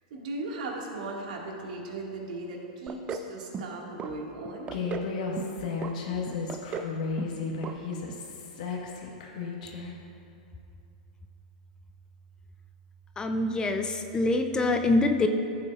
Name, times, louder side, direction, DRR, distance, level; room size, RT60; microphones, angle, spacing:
voice 1, 0.1-4.7, right 2 dB, 70° right, -1 dB, 1.9 m, -37 dB
sound 1, 2.9-3.3 3.5-4.1 4.4-5.1 5.4-5.9 6.3-6.9 7.2-7.4 7.6-7.8 8.1-8.2, right 5 dB, 25° right, 0.6 m, -36 dB
Human voice, 4.7-9.9, left 4 dB, 70° left, 1.4 m, -34 dB
voice 2, 13.2-15.3, left 2 dB, 20° left, 6 dB, 0.5 m, -25 dB
14.5 x 8.5 x 2.5 m, 2.6 s
hypercardioid pair, 115°, 4 cm